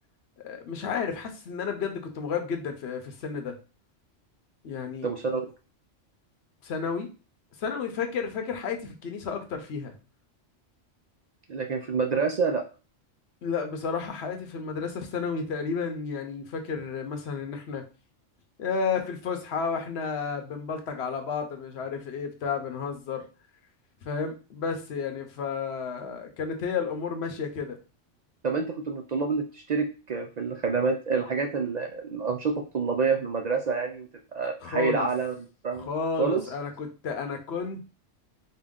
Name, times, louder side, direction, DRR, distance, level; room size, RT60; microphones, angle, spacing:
voice 1, 0.4-3.6 4.6-5.1 6.6-7.1 7.6-10.0 13.4-17.8 18.6-23.3 24.0-27.8 34.6-35.1 35.8-37.8, left 5 dB, 65° left, 5 dB, 0.9 m, -32 dB
voice 2, 5.0-5.4 11.5-12.6 28.4-34.1 34.3-35.3 35.6-35.9 36.2-36.4, right 5 dB, 65° right, 3 dB, 0.4 m, -27 dB
3.7 x 2.2 x 3.6 m, 0.32 s
omnidirectional pair, 1.3 m